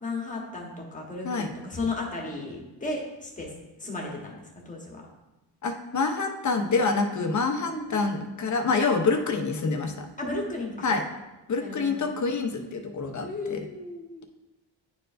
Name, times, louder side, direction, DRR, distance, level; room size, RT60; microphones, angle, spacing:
voice 1, 0.0-3.5 3.8-5.0 7.7-8.1 10.2-10.9 11.6-12.1 13.2-14.2, left 2 dB, 15° left, -1 dB, 1.2 m, -34 dB
voice 2, 5.6-10.1 10.8-11.0 11.5-13.7, left 4 dB, 40° left, 5 dB, 0.7 m, -26 dB
10.0 x 4.5 x 2.5 m, 1.0 s
wide cardioid pair, 155°, 44 cm